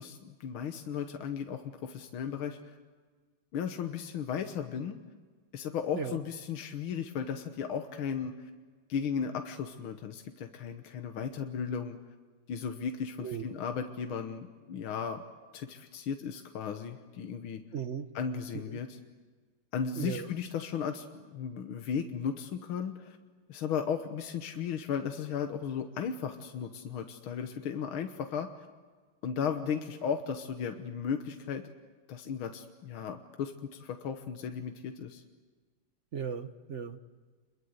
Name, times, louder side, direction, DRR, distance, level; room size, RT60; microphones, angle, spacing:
voice 1, 0.0-2.8 3.5-5.0 5.5-8.5 8.9-12.0 12.5-15.2 15.5-17.6 18.2-19.0 19.7-23.2 23.5-28.5 29.2-31.7 32.1-35.2, left 7 dB, 80° left, 6 dB, 2.0 m, -35 dB
voice 2, 13.2-13.6 17.7-18.1 18.5-18.8 19.9-20.3 36.1-37.0, right 7 dB, 50° right, 10 dB, 0.9 m, -37 dB
28.5 x 22.5 x 8.0 m, 1.4 s
omnidirectional pair, 2.3 m